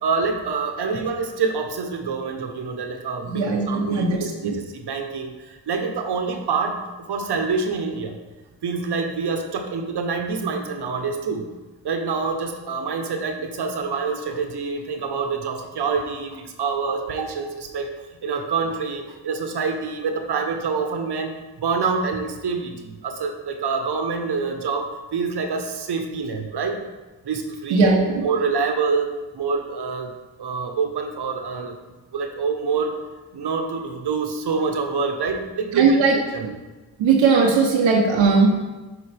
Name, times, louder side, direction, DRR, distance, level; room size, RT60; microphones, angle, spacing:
voice 1, 0.0-8.2 8.6-11.5 11.8-17.9 18.2-21.3 21.6-26.8 27.2-27.8 28.2-30.1 30.4-33.0 33.3-36.4, right 5 dB, 60° right, 5 dB, 1.1 m, -26 dB
voice 2, 3.3-4.6 27.7-28.3 35.7-36.1 36.4-36.5 37.0-38.5, right 4 dB, 85° right, -1 dB, 1.0 m, -18 dB
8.1 x 4.9 x 3.4 m, 1.2 s
supercardioid pair, 45°, 46 cm